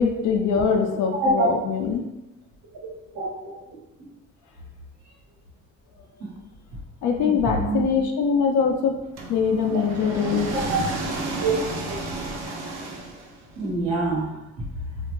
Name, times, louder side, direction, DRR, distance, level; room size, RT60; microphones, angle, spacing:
voice 1, 0.0-2.0 7.0-8.9 9.3-10.5, left 6 dB, 75° left, 2 dB, 0.4 m, -22 dB
voice 2, 3.1-3.5 7.2-7.9 9.7-9.8 10.7-10.8 11.4-11.5 13.5-14.4, right 3 dB, 85° right, -5 dB, 1.2 m, -25 dB
sound 1, 9.2-13.6, right 2 dB, 65° right, 0.6 m, -32 dB
2.5 x 2.1 x 3.0 m, 0.93 s
cardioid pair, 90°, 30 cm